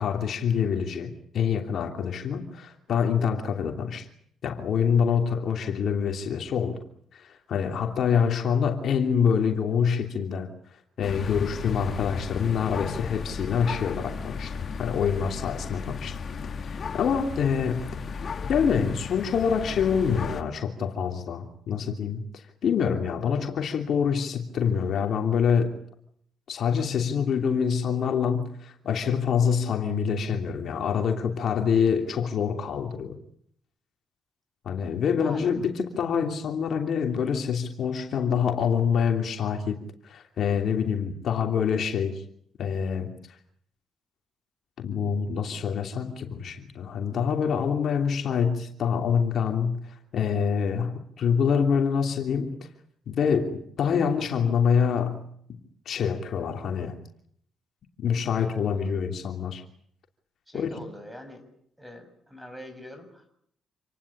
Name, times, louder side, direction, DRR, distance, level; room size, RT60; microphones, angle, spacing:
voice 1, 0.0-4.1 4.4-6.8 7.1-10.5 11.0-16.2 16.6-18.0 18.5-25.7 26.5-33.1 34.6-39.8 40.0-42.2 42.6-43.1 44.8-52.6 53.1-55.2 55.8-57.0 58.0-59.6 60.5-60.7, left 7 dB, 65° left, 4 dB, 3.0 m, -26 dB
sound 1, 11.0-20.4, left 5 dB, 50° left, 1.9 m, -35 dB
voice 2, 35.2-35.5 58.6-58.9 60.5-61.4 61.8-63.3, left 1 dB, 5° right, 9 dB, 6.7 m, -44 dB
27.5 x 19.0 x 8.7 m, 0.68 s
cardioid pair, 90°, 0 cm